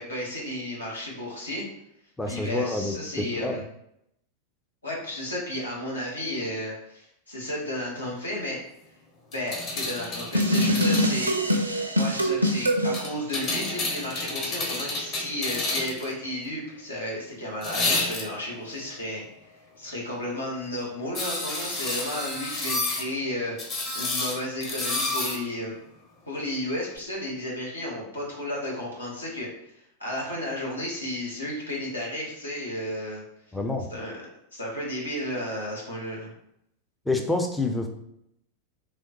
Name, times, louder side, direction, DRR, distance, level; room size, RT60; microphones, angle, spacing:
voice 1, 0.0-1.6 2.3-3.6 4.8-8.6 9.3-11.3 11.9-19.2 19.8-23.6 23.9-25.8 26.3-29.5 30.0-33.2 33.9-34.2 34.5-36.3, left 1 dB, 80° left, -4 dB, 1.2 m, -33 dB
voice 2, 2.2-3.6 33.5-33.9 37.1-37.9, left 2 dB, 5° left, 3 dB, 0.4 m, -27 dB
sound 1, 9.3-11.1 12.9-16.1 17.6-18.5 21.1-23.1 23.6-25.4 27.0-27.1, left 2 dB, 30° left, 0.9 m, -30 dB
sound 2, 10.3-13.0, equal, 85° right, 0.4 m, -23 dB
3.4 x 3.0 x 2.9 m, 0.77 s
figure-of-eight pair, 90°, 0 cm